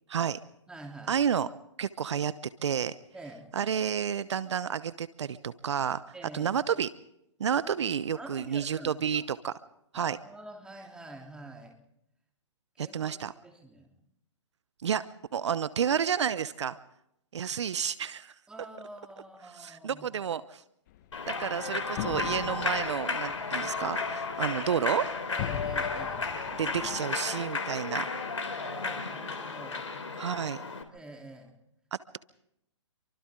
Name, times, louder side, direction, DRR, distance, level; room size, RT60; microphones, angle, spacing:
voice 1, 0.1-0.4 1.1-1.5 1.8-2.3 2.6-3.0 3.5-6.0 6.3-6.9 7.4-9.5 9.9-10.2 12.8-13.3 14.8-15.0 15.3-16.8 17.3-18.3 19.5-20.6 21.3-25.1 26.6-28.1 30.2-30.6, right 8 dB, 65° right, 16 dB, 0.8 m, -30 dB
voice 2, 0.7-1.2 3.1-3.5 6.1-6.4 7.5-7.6 8.1-9.2 9.9-11.8 12.8-13.2 13.4-13.9 18.5-20.2 25.3-26.3 28.6-29.8 30.9-31.6, right 2 dB, 5° right, 0 dB, 3.5 m, -46 dB
sound 1, 20.9-27.0, left 11 dB, 40° left, 1.2 m, -40 dB
Human voice / Clapping / Cheering, 21.1-30.8, left 4 dB, 80° left, 3.4 m, -33 dB
28.5 x 24.5 x 3.8 m, 0.79 s
hypercardioid pair, 135°, 16 cm